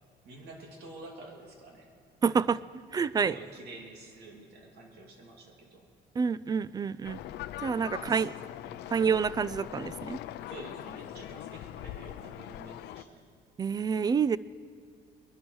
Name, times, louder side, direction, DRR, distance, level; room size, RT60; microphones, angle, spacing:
voice 1, 0.2-1.9 2.3-2.5 3.1-5.9 7.8-8.2 8.6-8.9 10.5-13.3, right 2 dB, 75° right, 1 dB, 2.9 m, -48 dB
voice 2, 2.2-2.6 2.9-3.4 6.2-7.2 7.6-8.3 8.9-10.2 13.6-14.4, right 6 dB, 25° right, 19 dB, 0.3 m, -28 dB
sound 1, 7.0-13.0, left 13 dB, 80° left, 0.5 m, -41 dB
21.5 x 11.5 x 4.7 m, 2.3 s
cardioid pair, 110°, 17 cm